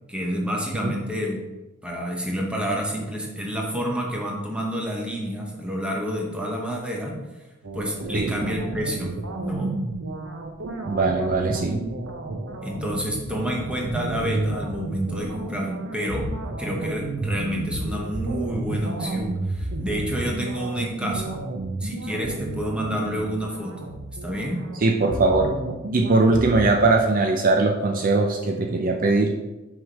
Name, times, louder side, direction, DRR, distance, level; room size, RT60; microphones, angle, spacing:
voice 1, 0.1-1.4 1.8-7.2 7.7-9.8 12.6-16.3 16.6-21.4 21.8-23.9 24.2-24.7, equal, 5° right, -1 dB, 1.0 m, -29 dB
sound 1, 7.6-26.6, right 2 dB, 80° right, 0.8 m, -31 dB
voice 2, 10.9-11.8 24.8-25.5 25.9-29.3, right 3 dB, 45° right, 2 dB, 0.5 m, -20 dB
6.2 x 3.7 x 4.7 m, 1.1 s
head